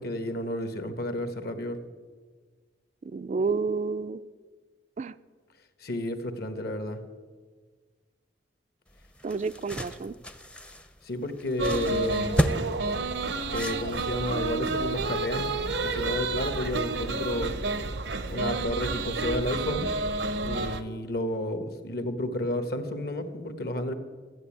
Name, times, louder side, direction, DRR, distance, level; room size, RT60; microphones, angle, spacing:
voice 1, 0.0-1.8 5.8-7.0 11.0-12.5 13.5-17.6 18.3-19.9 20.3-23.9, left 1 dB, 60° left, 9 dB, 1.3 m, -31 dB
voice 2, 3.0-4.2 5.0-5.1 9.2-10.1, right 4 dB, 40° right, 13 dB, 0.3 m, -30 dB
sound 1, 8.9-14.3, equal, 5° left, 0.6 m, -33 dB
sound 2, 11.6-20.8, right 3 dB, 85° right, 0.9 m, -30 dB
12.5 x 8.6 x 8.6 m, 1.5 s
head